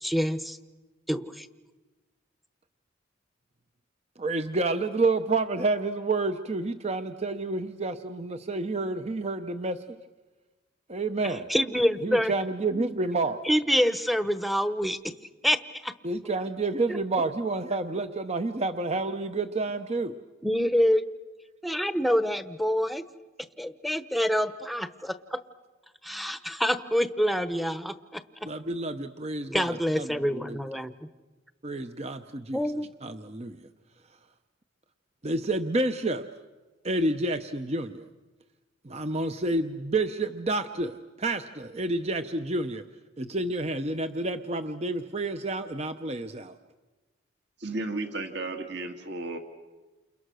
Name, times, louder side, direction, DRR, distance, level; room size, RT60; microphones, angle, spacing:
voice 1, 0.0-0.6 1.1-1.5 11.2-12.3 13.4-15.1 15.4-15.9 20.4-21.0 21.6-23.0 23.6-25.4 26.0-28.2 29.5-31.1 32.5-32.9, equal, ahead, 0.9 m, -26 dB
voice 2, 4.2-9.8 10.9-11.5 12.0-13.4 16.0-20.1 28.4-30.6 31.6-32.6 33.0-33.7 35.2-36.2 36.8-38.1 38.8-42.8 43.2-46.6, right 2 dB, 30° right, 0.8 m, -29 dB
voice 3, 47.6-49.4, right 2 dB, 55° right, 2.1 m, -33 dB
29.5 x 29.0 x 6.3 m
head